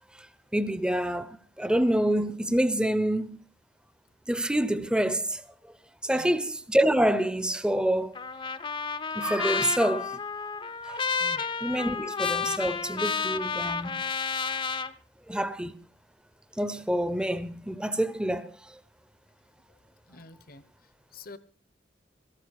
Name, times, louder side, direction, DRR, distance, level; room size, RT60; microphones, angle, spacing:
voice 1, 0.5-3.4 4.3-5.4 6.0-8.1 9.1-10.2 10.9-11.2 11.6-14.1 15.3-15.7 16.6-18.6, right 1 dB, 5° right, 0.7 m, -27 dB
Trumpet, 8.1-14.9, left 5 dB, 30° left, 0.7 m, -31 dB
voice 2, 20.1-20.6 21.1-21.4, left 3 dB, 55° left, 1.0 m, -46 dB
17.5 x 14.0 x 4.7 m
head